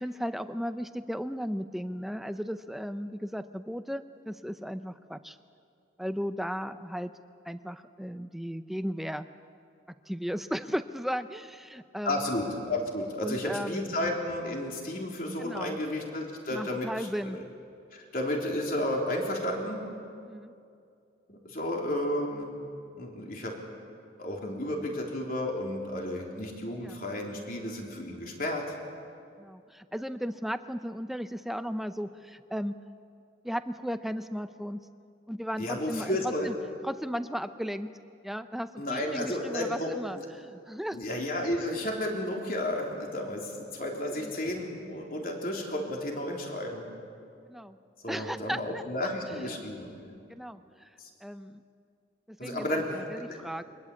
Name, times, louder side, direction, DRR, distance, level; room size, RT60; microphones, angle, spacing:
voice 1, 0.0-5.4 6.0-7.1 7.4-9.3 10.1-12.3 13.2-13.9 15.4-15.8 16.5-17.4 20.3-20.5 26.8-27.0 29.4-32.8 33.4-34.9 35.3-36.5 36.8-38.0 38.2-41.0 44.1-44.3 47.5-47.8 48.1-48.8 49.3-49.6 50.3-50.9 51.2-51.6 52.3-53.6, equal, ahead, 10 dB, 0.6 m, -35 dB
voice 2, 12.0-17.4 17.9-19.8 21.3-22.6 23.0-23.5 24.2-28.8 35.6-36.5 38.8-39.9 40.9-46.9 48.0-49.9 51.0-51.1 52.4-53.5, left 1 dB, 50° left, 0 dB, 3.7 m, -32 dB
23.5 x 21.0 x 8.6 m, 2.4 s
head